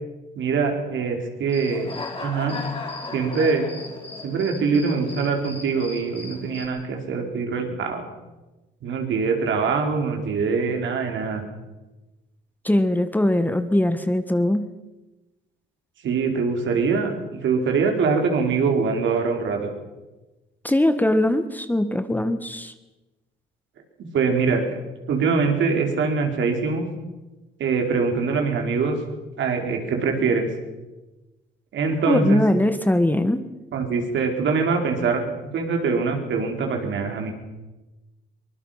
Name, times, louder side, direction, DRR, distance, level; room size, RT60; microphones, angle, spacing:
voice 1, 0.4-2.6 3.1-3.7 4.2-8.0 8.8-11.4 16.0-19.7 24.1-24.8 25.1-26.8 27.6-29.0 29.4-30.5 31.7-32.4 33.7-37.3, right 5 dB, 70° right, 3 dB, 4.5 m, -23 dB
Human voice / Cricket, 1.5-6.7, left 3 dB, 30° left, 4.0 m, -36 dB
voice 2, 12.6-14.6 20.6-22.7 32.1-33.4, left 1 dB, 10° left, 10 dB, 1.5 m, -21 dB
23.5 x 21.0 x 5.8 m, 1.1 s
cardioid pair, 90°, 20 cm